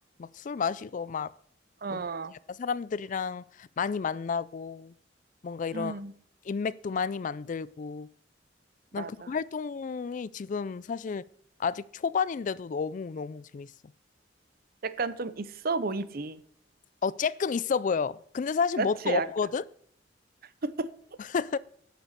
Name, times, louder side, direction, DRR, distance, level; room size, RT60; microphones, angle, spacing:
voice 1, 0.2-1.3 1.9-2.0 2.6-4.9 5.4-6.0 6.5-8.1 8.9-11.2 11.6-13.7 17.0-19.6 21.3-21.6, left 5 dB, 45° left, 0.4 m, -31 dB
voice 2, 1.8-2.3 5.7-6.1 8.9-9.3 14.8-16.4 18.8-19.3 20.6-20.9, right 4 dB, 55° right, 0.7 m, -32 dB
10.5 x 6.8 x 6.7 m
head